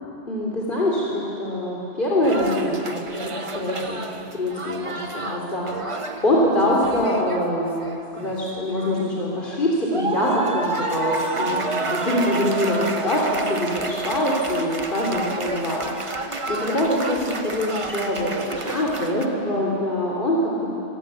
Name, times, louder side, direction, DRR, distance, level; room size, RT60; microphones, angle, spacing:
voice 1, 0.3-4.1 4.3-7.9 8.1-16.2 16.5-20.7, left 1 dB, 55° left, -4 dB, 3.5 m, -24 dB
sound 1, 2.2-6.3 6.6-8.4 8.8-9.6 9.9-19.3, right 3 dB, 30° right, 1.1 m, -30 dB
25.0 x 17.0 x 8.2 m, 2.9 s
omnidirectional pair, 1.1 m